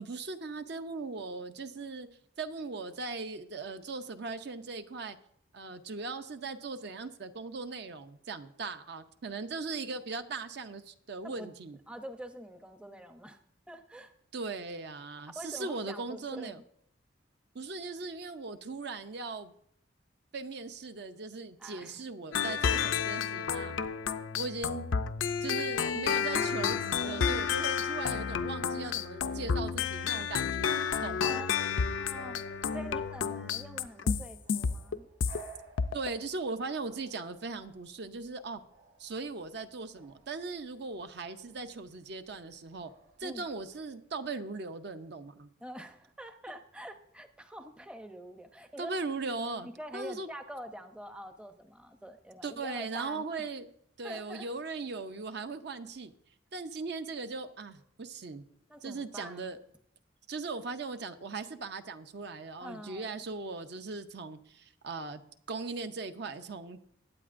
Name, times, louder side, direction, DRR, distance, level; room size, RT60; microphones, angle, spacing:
voice 1, 0.0-2.1 2.4-5.2 5.5-11.8 14.3-16.6 17.5-19.5 20.3-23.8 24.3-24.8 25.4-31.3 35.9-38.6 39.0-42.9 43.2-45.5 48.8-50.3 52.4-53.7 54.0-56.1 56.5-58.4 58.8-59.6 60.3-65.2 65.5-66.8, right 3 dB, 60° right, 9 dB, 0.6 m, -39 dB
voice 2, 11.9-13.4 13.7-14.1 15.3-16.6 21.6-22.1 31.2-35.1 43.2-43.4 45.6-48.9 49.6-53.5 54.0-54.5 58.7-59.4 62.6-63.1, equal, 5° right, 7 dB, 0.6 m, -45 dB
sound 1, 22.3-35.4 35.8-36.1, left 6 dB, 85° left, 0.5 m, -31 dB
Bark / Bird vocalization bird call bird song, 26.8-43.8, right 2 dB, 85° right, 3.0 m, -57 dB
21.0 x 8.7 x 2.5 m, 0.70 s
head